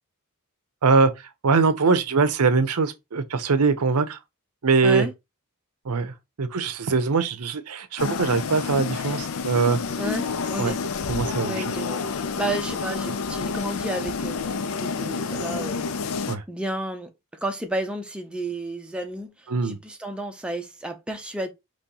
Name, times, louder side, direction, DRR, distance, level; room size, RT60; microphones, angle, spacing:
voice 1, 1.4-4.2 4.6-5.1 5.8-6.1 6.4-9.8 10.6-10.7 11.1-11.6 16.3-16.4 19.5-19.8, right 4 dB, 80° right, 0.7 m, -22 dB
voice 2, 4.8-5.1 10.0-10.8 11.4-12.0 12.4-15.9 16.5-17.1 17.4-21.5, right 1 dB, 5° right, 0.6 m, -32 dB
sound 1, 8.0-16.3, left 5 dB, 65° left, 0.5 m, -29 dB
5.3 x 3.1 x 2.9 m
head